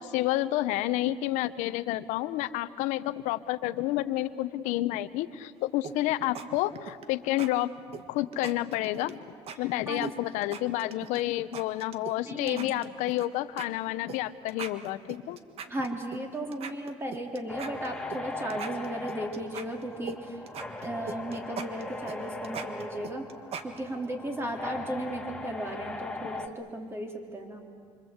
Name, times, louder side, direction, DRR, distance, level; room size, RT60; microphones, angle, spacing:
voice 1, 0.0-7.7 8.1-9.2 9.6-15.4, left 15 dB, 85° left, 13 dB, 0.9 m, -30 dB
sound 1, 5.8-6.5 6.8-7.1 7.4-7.5 7.9-9.1 9.5-9.6 10.0-11.2 11.5-12.2 12.5-13.3 13.6-13.7 14.1-14.2 14.5-16.2 16.5-18.2 18.5-20.2 20.5-24.1, right 6 dB, 55° right, 1.6 m, -40 dB
voice 2, 12.3-12.8 15.7-20.4 20.8-23.3 23.6-27.7, right 1 dB, 20° right, 3 dB, 3.8 m, -35 dB
sound 2, 17.5-26.5, left 2 dB, 5° left, 1.7 m, -39 dB
26.5 x 25.0 x 8.1 m, 2.1 s
cardioid pair, 120°, 12 cm